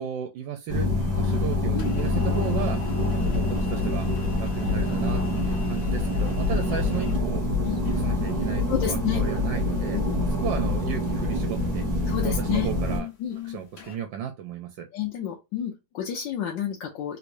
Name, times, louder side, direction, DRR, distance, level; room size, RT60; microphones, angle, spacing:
voice 1, 0.0-2.8 3.1-4.1 4.4-7.4 7.9-10.0 10.3-11.9 12.2-13.1 13.5-14.9, right 9 dB, 75° right, 1.2 m, -34 dB
sound 1, 0.7-13.0, left 2 dB, 30° right, 0.8 m, -25 dB
sound 2, 1.0-14.0, left 10 dB, 55° left, 1.5 m, -43 dB
voice 2, 8.7-9.2 9.9-10.2 12.1-12.7 13.2-13.4 14.9-17.2, left 9 dB, 75° left, 1.3 m, -30 dB
3.4 x 3.0 x 2.5 m
omnidirectional pair, 2.1 m